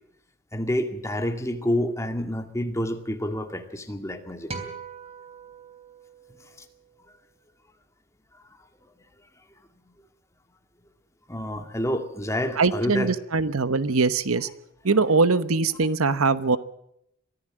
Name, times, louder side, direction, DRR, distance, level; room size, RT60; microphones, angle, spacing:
voice 1, 0.5-4.5 11.3-13.1, left 1 dB, 15° left, 6 dB, 2.2 m, -28 dB
sound 1, 4.5-7.0, right 4 dB, 30° right, 3.5 m, -41 dB
voice 2, 12.6-14.5 14.8-16.6, right 4 dB, 75° right, 14 dB, 1.0 m, -22 dB
23.5 x 15.0 x 7.6 m, 0.76 s
head